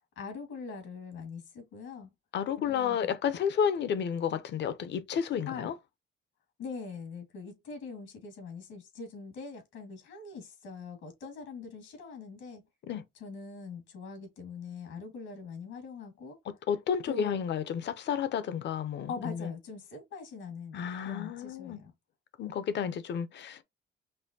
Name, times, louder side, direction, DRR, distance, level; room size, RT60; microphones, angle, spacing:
voice 1, 0.2-2.1 2.7-3.0 5.5-5.7 6.6-12.6 13.2-16.4 17.0-17.4 19.1-21.9, left 4 dB, 90° left, 2.0 m, -42 dB
voice 2, 2.3-5.7 12.9-13.0 16.7-19.5 20.7-21.8 22.4-23.6, left 8 dB, 65° left, 0.7 m, -31 dB
5.4 x 2.2 x 2.7 m
cardioid pair, 90°, 20 cm